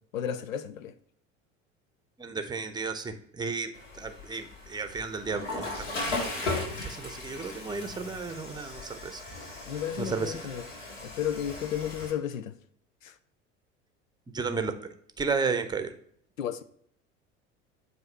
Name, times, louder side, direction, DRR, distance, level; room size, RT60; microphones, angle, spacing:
voice 1, 0.1-0.9 9.7-10.6 11.0-12.5 13.0-13.1 16.4-16.6, left 9 dB, 85° left, 0.5 m, -33 dB
voice 2, 2.2-9.2 10.0-10.4 14.3-14.7 15.2-15.9, right 4 dB, 10° right, 0.7 m, -33 dB
Water / Toilet flush, 3.7-12.1, left 2 dB, 70° left, 2.0 m, -37 dB
7.6 x 2.7 x 5.6 m
figure-of-eight pair, 70°, 39 cm